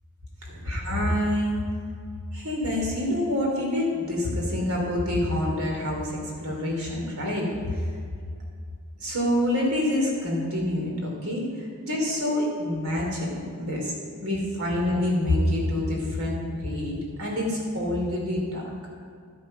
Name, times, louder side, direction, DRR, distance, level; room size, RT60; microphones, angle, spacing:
voice 1, 0.5-1.5 2.3-6.1 6.4-7.5 9.0-11.5 11.8-13.9 14.2-18.6, left 1 dB, 90° right, -1 dB, 3.1 m, -26 dB
12.0 x 8.0 x 5.4 m, 2.2 s
head